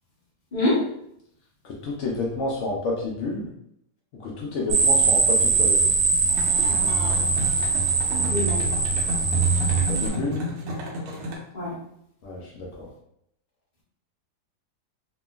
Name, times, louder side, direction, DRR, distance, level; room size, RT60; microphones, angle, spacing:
voice 1, 1.6-3.5 4.1-5.8 9.9-10.4 12.2-12.9, left 2 dB, 85° left, -3 dB, 0.6 m, -29 dB
sound 1, 4.7-10.1, right 4 dB, 90° right, 1.2 m, -21 dB
sound 2, 6.3-11.3, equal, 70° right, 1.0 m, -33 dB
voice 2, 6.7-7.7 8.2-8.6 11.5-11.7, left 2 dB, 35° left, -5 dB, 0.8 m, -27 dB
2.8 x 2.4 x 2.3 m, 0.74 s
omnidirectional pair, 1.8 m